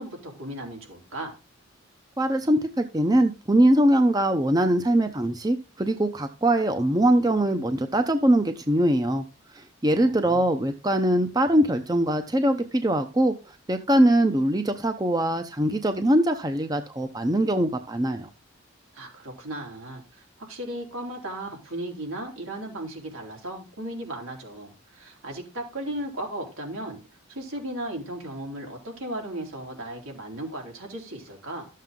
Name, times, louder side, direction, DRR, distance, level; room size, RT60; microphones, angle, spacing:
voice 1, 0.0-1.3 9.8-10.4 18.9-20.0 20.4-27.0 27.3-31.7, right 1 dB, 85° right, 1 dB, 4.0 m, -36 dB
voice 2, 2.2-9.2 9.8-13.3 13.7-18.3, right 1 dB, 20° right, 7 dB, 0.7 m, -22 dB
13.0 x 7.6 x 3.8 m, 0.30 s
head